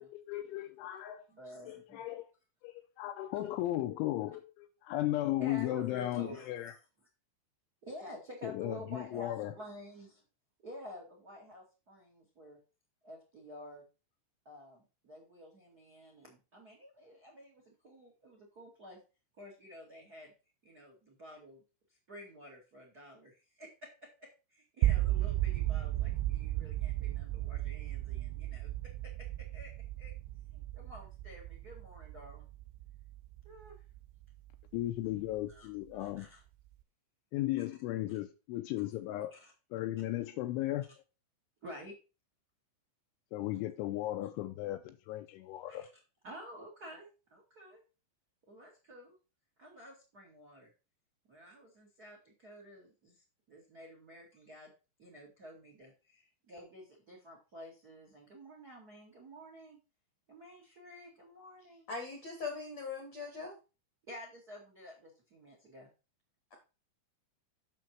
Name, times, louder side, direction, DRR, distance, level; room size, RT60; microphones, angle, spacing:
voice 1, 0.0-1.2 1.7-2.2 2.6-6.7 8.4-9.5 34.7-36.3 37.3-39.3 39.7-40.9 43.3-45.9, left 15 dB, 80° left, 3.0 m, -36 dB
voice 2, 1.3-2.1 5.4-6.8 7.8-10.2 10.6-12.6 13.0-13.9 14.4-19.0 19.4-20.3 20.6-21.6 21.9-28.7 29.0-30.1 30.5-32.5 33.4-33.8 35.5-35.7 35.9-36.4 37.6-37.7 39.3-39.5 41.6-41.9 45.6-45.9 46.2-47.8 48.5-49.1 49.6-50.7 51.3-54.7 55.0-59.8 60.3-61.9 64.1-65.9, equal, 45° right, 1.1 m, -51 dB
sound 1, 24.8-34.8, right 15 dB, 80° right, 3.0 m, -35 dB
voice 3, 61.9-63.6, left 4 dB, 60° left, 1.8 m, -40 dB
7.6 x 6.6 x 4.6 m
omnidirectional pair, 5.7 m